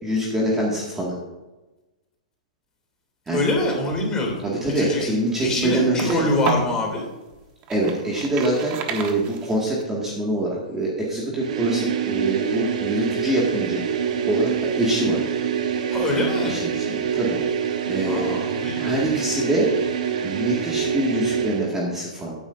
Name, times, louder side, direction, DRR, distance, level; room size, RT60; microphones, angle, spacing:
voice 1, 0.0-1.1 3.3-3.4 4.4-6.3 7.7-13.8 14.3-14.5 14.8-15.2 16.4-17.4 17.9-18.4 18.7-19.7 20.2-22.3, right 1 dB, 10° right, -4 dB, 1.9 m, -24 dB
voice 2, 3.3-4.4 4.8-5.1 5.4-7.1 15.9-16.6 18.0-19.0, left 2 dB, 15° left, -1 dB, 2.8 m, -24 dB
sound 1, 4.7-6.8 7.3-9.8, right 6 dB, 30° right, 1.2 m, -32 dB
sound 2, 11.4-21.7, right 8 dB, 65° right, 1.3 m, -26 dB
14.0 x 9.5 x 2.6 m, 1.1 s
hypercardioid pair, 145°, 4 cm